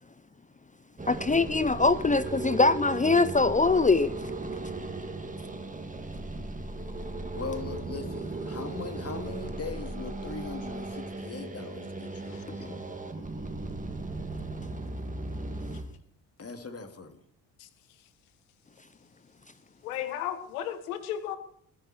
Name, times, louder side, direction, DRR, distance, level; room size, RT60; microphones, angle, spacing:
sound 1, 1.0-15.8, right 2 dB, 20° right, 2.7 m, -37 dB
voice 1, 1.1-4.2 12.5-12.8, left 3 dB, 20° left, 0.8 m, -23 dB
voice 2, 7.3-12.7 16.4-17.2, left 4 dB, 35° left, 2.9 m, -40 dB
voice 3, 19.8-21.4, left 10 dB, 90° left, 1.5 m, -34 dB
20.5 x 9.7 x 4.6 m
hypercardioid pair, 55°, 42 cm